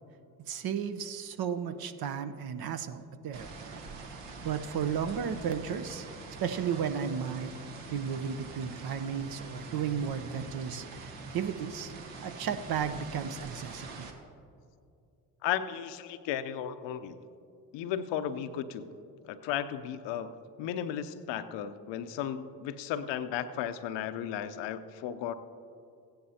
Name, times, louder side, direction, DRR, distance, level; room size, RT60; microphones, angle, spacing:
voice 1, 0.5-3.5 4.4-6.1 6.4-7.5 7.9-11.9 12.2-13.9, right 7 dB, 55° right, 9 dB, 0.8 m, -34 dB
sound 1, 3.3-14.1, right 4 dB, 70° right, 1.3 m, -44 dB
voice 2, 15.4-17.1 17.7-18.9 19.2-20.3 20.6-25.3, left 9 dB, 70° left, 11 dB, 0.7 m, -35 dB
16.0 x 10.0 x 2.8 m, 2.5 s
hypercardioid pair, 50°, 45 cm